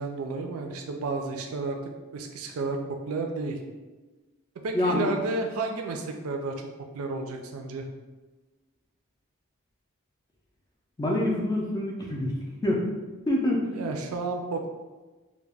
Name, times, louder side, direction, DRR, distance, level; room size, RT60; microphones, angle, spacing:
voice 1, 0.0-1.8 2.1-2.8 3.1-3.6 4.6-6.5 6.9-7.9 13.7-14.7, right 3 dB, 80° right, 3 dB, 0.4 m, -31 dB
voice 2, 4.7-5.1 11.0-12.3 12.6-12.9 13.3-13.6, left 1 dB, 15° left, -2 dB, 0.3 m, -26 dB
2.2 x 2.1 x 3.3 m, 1.2 s
head